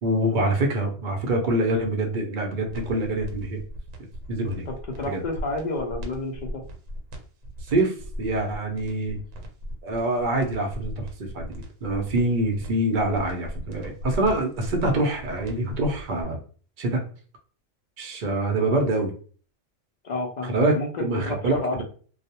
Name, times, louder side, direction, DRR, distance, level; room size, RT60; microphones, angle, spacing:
voice 1, 0.0-3.6 4.3-4.7 5.0-5.2 7.6-9.2 9.8-16.4 16.8-17.1 18.0-19.1 20.5-21.5, right 1 dB, 55° right, 2 dB, 0.6 m, -25 dB
sound 1, 2.7-16.2, equal, 80° right, 1.0 m, -38 dB
voice 2, 4.7-6.6 20.0-21.8, left 2 dB, 70° left, 2 dB, 0.4 m, -31 dB
2.3 x 2.0 x 2.7 m, 0.41 s
omnidirectional pair, 1.4 m